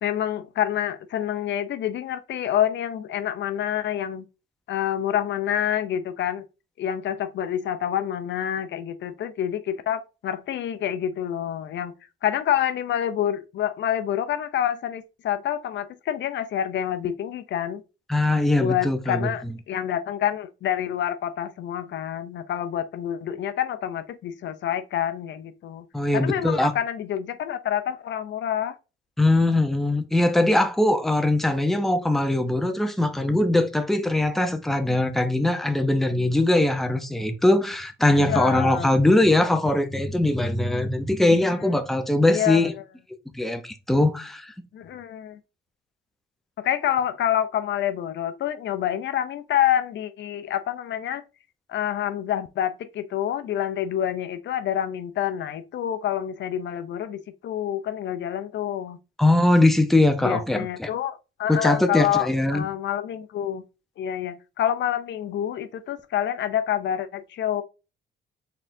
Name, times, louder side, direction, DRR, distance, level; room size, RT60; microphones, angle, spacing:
voice 1, 0.0-4.2 4.7-6.4 6.8-11.9 12.2-17.8 18.6-25.8 26.1-28.7 38.3-38.9 41.6-41.7 42.3-42.7 44.7-45.4 46.6-51.2 51.7-59.0 60.2-63.6 64.0-67.6, left 10 dB, 65° left, 0.6 m, -27 dB
voice 2, 18.1-19.5 25.9-26.7 29.2-42.7 43.3-44.5 59.2-60.9 61.5-62.7, left 1 dB, ahead, 0.7 m, -21 dB
4.1 x 3.7 x 2.7 m
cardioid pair, 90°, 20 cm